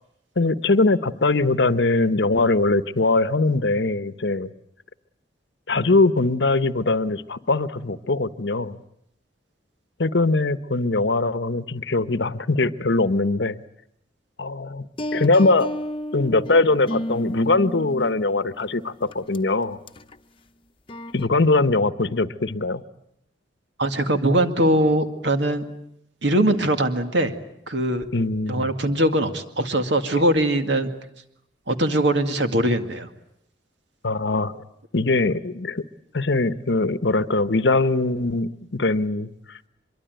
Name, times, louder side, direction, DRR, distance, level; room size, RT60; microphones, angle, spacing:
voice 1, 0.4-4.5 5.7-8.8 10.0-13.6 14.4-14.9 15.1-15.7 16.1-19.8 21.1-22.8 28.1-28.7 34.0-34.6 34.9-35.8 36.1-39.6, left 3 dB, 70° left, 13 dB, 1.0 m, -21 dB
sound 1, 15.0-18.6 19.1-19.4 19.9-20.1 20.9-21.3, equal, 30° left, 0.9 m, -32 dB
voice 2, 23.8-25.6 26.2-27.3 27.7-28.1 28.5-30.9 31.7-33.1, right 1 dB, 70° right, 7 dB, 2.1 m, -21 dB
24.5 x 23.0 x 9.1 m, 0.77 s
head